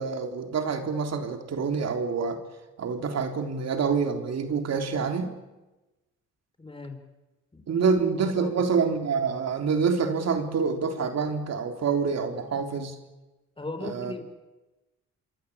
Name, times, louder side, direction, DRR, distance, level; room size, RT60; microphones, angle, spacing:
voice 1, 0.0-2.4 2.8-5.4 7.7-13.0 13.8-14.1, right 5 dB, 55° right, 6 dB, 3.6 m, -27 dB
voice 2, 6.6-7.0 7.5-8.7 13.6-14.2, left 3 dB, 20° left, 6 dB, 4.7 m, -39 dB
27.0 x 23.0 x 8.6 m, 1.1 s
cardioid pair, 90°, 30 cm